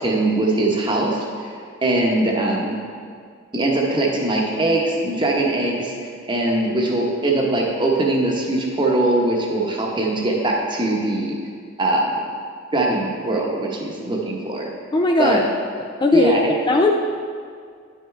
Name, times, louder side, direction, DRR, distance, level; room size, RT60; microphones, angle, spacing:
voice 1, 0.0-2.8 3.5-11.3 11.8-12.1 12.7-14.7 15.2-15.4 16.1-16.5, right 2 dB, 25° right, -1 dB, 1.0 m, -21 dB
voice 2, 14.9-15.5 15.8-16.4 16.7-16.9, left 2 dB, 20° left, 2 dB, 0.4 m, -18 dB
9.8 x 5.6 x 3.3 m, 2.1 s
head